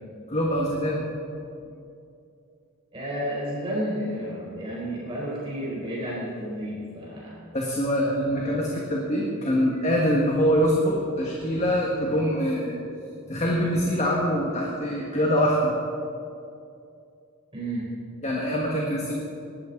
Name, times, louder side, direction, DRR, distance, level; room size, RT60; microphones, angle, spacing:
voice 1, 0.3-1.0 7.5-12.8 13.3-15.7 18.2-19.1, equal, 30° left, -3 dB, 1.8 m, -24 dB
voice 2, 2.9-7.4 17.5-17.9, equal, 25° right, -7 dB, 4.2 m, -31 dB
20.5 x 14.0 x 4.0 m, 2.5 s
head